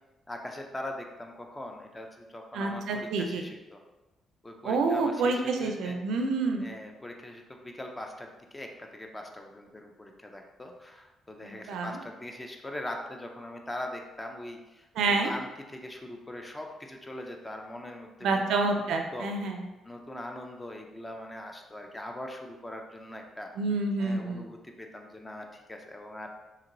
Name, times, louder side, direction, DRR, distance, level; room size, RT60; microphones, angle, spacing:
voice 1, 0.3-3.8 4.4-6.0 6.6-19.3 19.8-23.5 24.0-26.3, left 1 dB, 15° left, 3 dB, 0.4 m, -41 dB
voice 2, 2.5-3.4 4.6-6.7 11.4-12.0 15.0-15.3 18.2-19.6 23.6-24.5, right 3 dB, 80° right, 3 dB, 0.4 m, -28 dB
2.9 x 2.9 x 2.5 m, 1.1 s
cardioid pair, 90°, 0 cm